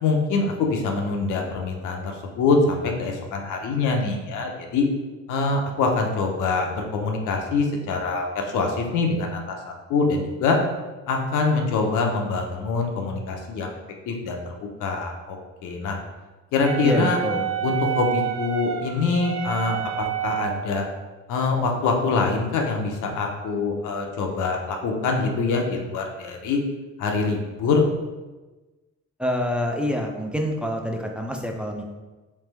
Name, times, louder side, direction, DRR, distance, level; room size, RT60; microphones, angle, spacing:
voice 1, 0.0-4.8 5.3-10.6 11.1-13.7 14.1-14.4 14.8-16.0 16.5-17.2 17.6-20.8 21.3-26.6 27.0-27.8, left 4 dB, 85° left, 2 dB, 0.7 m, -24 dB
Wind instrument woodwind instrument, 16.6-20.8, right 10 dB, 60° right, 0.5 m, -29 dB
voice 2, 16.8-17.6 29.2-31.8, left 1 dB, 5° right, 1 dB, 0.4 m, -26 dB
3.3 x 3.3 x 3.3 m, 1.2 s
cardioid pair, 90°, 30 cm